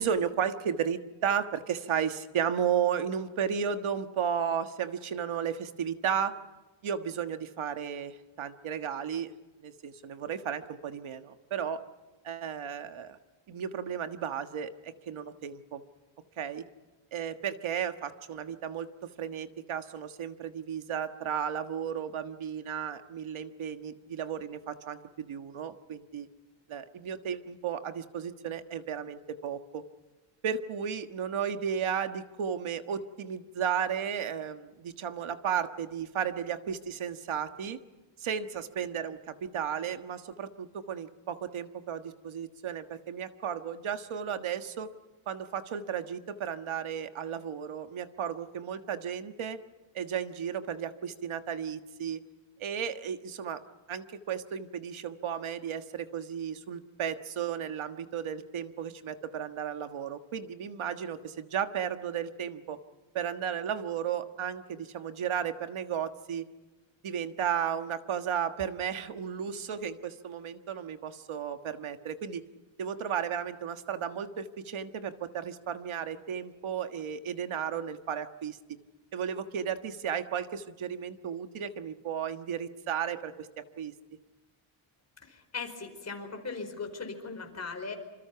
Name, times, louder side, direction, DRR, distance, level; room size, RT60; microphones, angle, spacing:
voice 1, 0.0-6.3 6.8-9.3 9.6-11.8 12.2-13.2 13.5-15.8 16.4-16.6 17.1-26.3 26.7-29.8 30.4-37.8 38.2-44.9 45.3-49.6 49.9-52.2 52.6-53.6 53.9-62.8 63.1-66.5 67.0-72.4 72.8-78.6 79.1-83.9, right 8 dB, 75° right, 8 dB, 1.6 m, -34 dB
voice 2, 85.2-87.9, left 4 dB, 30° left, 5 dB, 4.8 m, -39 dB
27.0 x 26.5 x 5.8 m, 1.2 s
wide cardioid pair, 160°, 48 cm